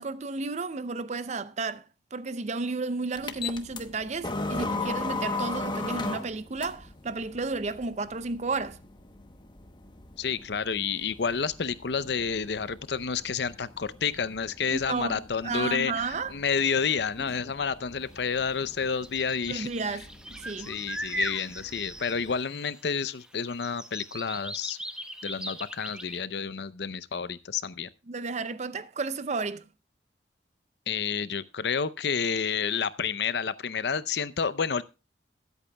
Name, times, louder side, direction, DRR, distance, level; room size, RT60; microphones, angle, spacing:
voice 1, 0.0-1.8 2.1-8.8 14.7-16.3 19.5-20.8 28.1-29.6, right 3 dB, 40° right, 0.5 m, -32 dB
sound 1, 3.2-22.4, left 3 dB, 25° left, 0.9 m, -39 dB
voice 2, 10.2-19.7 20.7-24.8 25.2-27.9 30.9-34.8, left 6 dB, 70° left, 0.6 m, -30 dB
sound 2, 18.2-18.3 19.0-22.8 23.1-26.2, right 1 dB, 5° right, 0.9 m, -39 dB
22.0 x 8.2 x 2.2 m
head